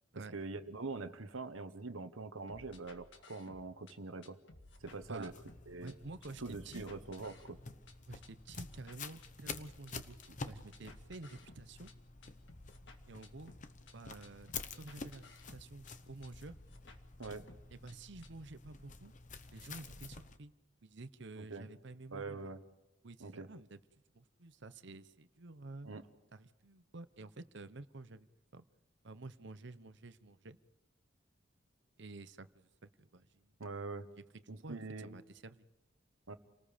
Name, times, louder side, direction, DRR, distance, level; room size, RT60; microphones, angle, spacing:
voice 1, 0.3-4.3 4.8-5.3 5.7-5.9 6.4-7.6 17.2-17.5 21.4-21.6 22.1-22.6 23.2-23.5 25.8-26.0 33.6-34.1 34.5-35.2 36.3-36.4, right 3 dB, 90° right, 9 dB, 1.3 m, -44 dB
sound 1, 2.5-3.9 4.2-5.9 6.2-7.9 8.2-9.9 10.2-11.9 12.2-13.9 14.2-15.9 16.2-17.9 18.2-18.3, left 2 dB, 60° left, 2.0 m, -58 dB
sound 2, 4.8-20.4, left 4 dB, 40° left, 1.0 m, -50 dB
voice 2, 5.8-6.9 8.1-11.9 13.1-13.5 13.9-16.5 17.7-19.1 19.5-20.5 20.8-22.6 23.0-23.8 24.1-25.9 26.3-28.3 28.5-28.6 29.0-30.6 32.0-33.5 34.6-35.7, right 2 dB, 60° right, 12 dB, 0.9 m, -50 dB
29.5 x 19.5 x 5.2 m, 0.96 s
head